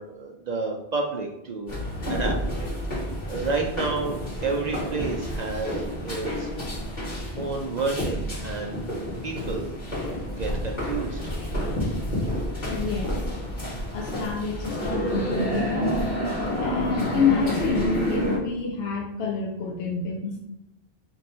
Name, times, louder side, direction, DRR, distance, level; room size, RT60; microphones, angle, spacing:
voice 1, 0.0-1.8 2.1-2.4 3.0-6.5 7.4-9.7 10.4-11.3, right 3 dB, 55° right, 1 dB, 0.5 m, -30 dB
sound 1, 1.7-18.4, equal, 45° left, 1.7 m, -29 dB
voice 2, 12.7-13.1 13.9-15.9 16.6-20.4, left 5 dB, 70° left, -1 dB, 0.8 m, -28 dB
3.8 x 2.6 x 4.2 m, 0.88 s
omnidirectional pair, 1.1 m